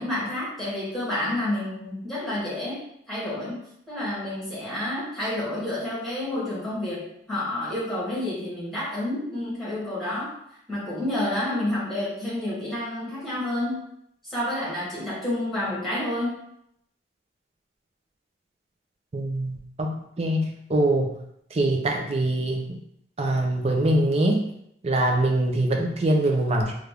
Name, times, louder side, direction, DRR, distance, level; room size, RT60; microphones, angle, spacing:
voice 1, 0.0-2.8 3.1-3.6 3.9-10.3 10.7-13.8 14.3-16.4, left 1 dB, ahead, -9 dB, 1.4 m, -29 dB
voice 2, 19.1-21.2 21.5-22.8 23.2-24.5 24.8-26.7, right 1 dB, 30° right, 2 dB, 0.4 m, -23 dB
3.2 x 2.4 x 3.4 m, 0.74 s
head